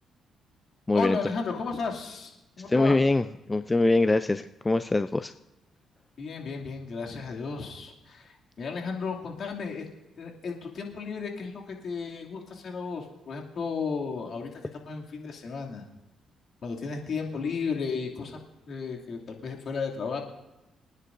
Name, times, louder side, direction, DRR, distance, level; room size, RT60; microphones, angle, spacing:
voice 1, 0.9-2.3 2.6-3.0 6.2-9.9 10.2-15.8 16.6-18.4 18.7-20.2, left 5 dB, 55° left, -1 dB, 2.4 m, -34 dB
voice 2, 2.7-5.3, left 2 dB, 20° left, 10 dB, 0.4 m, -23 dB
25.5 x 9.7 x 2.6 m, 0.97 s
cardioid pair, 90°, 0 cm